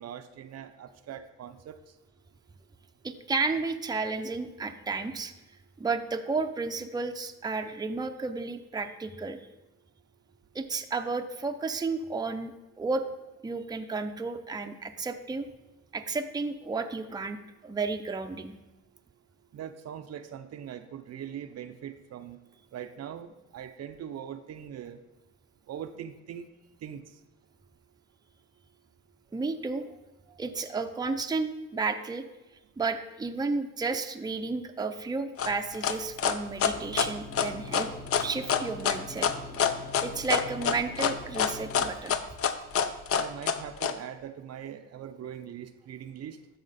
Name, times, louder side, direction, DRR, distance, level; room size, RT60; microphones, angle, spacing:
voice 1, 0.0-1.8 19.5-22.4 22.7-25.0 25.7-26.5 26.8-27.0 43.1-46.4, right 9 dB, 55° right, 9 dB, 0.6 m, -41 dB
voice 2, 3.0-5.3 5.8-9.4 10.5-13.0 13.4-15.5 15.9-17.4 17.6-18.5 29.3-29.9 30.4-32.2 32.8-37.9 38.2-39.4 40.0-42.2, right 4 dB, 15° right, 6 dB, 0.5 m, -32 dB
sound 1, 35.4-43.9, left 7 dB, 50° left, 0.6 m, -26 dB
sound 2, 36.7-41.8, left 2 dB, 25° left, 0.8 m, -44 dB
12.5 x 4.3 x 4.1 m, 1.0 s
cardioid pair, 90°, 30 cm